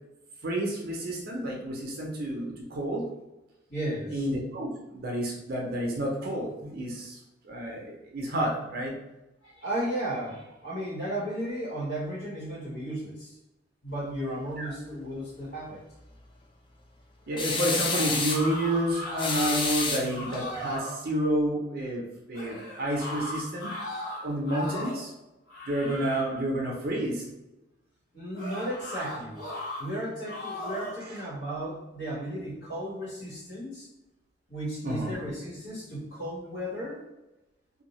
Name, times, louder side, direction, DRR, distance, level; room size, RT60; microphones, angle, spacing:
voice 1, 0.4-3.1 4.1-7.2 7.4-8.9 14.6-14.7 17.3-23.7 24.2-25.1 25.7-27.2 31.0-31.2 34.8-35.2, right 1 dB, 55° right, -1 dB, 0.5 m, -30 dB
voice 2, 3.7-4.2 9.4-13.4 13.8-15.8 28.1-29.4 29.8-33.9 34.5-37.0, right 1 dB, 80° left, -7 dB, 1.4 m, -34 dB
sound 1, 17.3-19.7 20.0-21.0 22.3-25.1 25.5-26.4 28.3-29.8 30.3-31.0, left 1 dB, 55° left, 1.0 m, -37 dB
sound 2, 17.4-18.5 19.2-20.4, left 4 dB, 25° left, 0.3 m, -29 dB
2.6 x 2.2 x 2.9 m, 0.98 s
head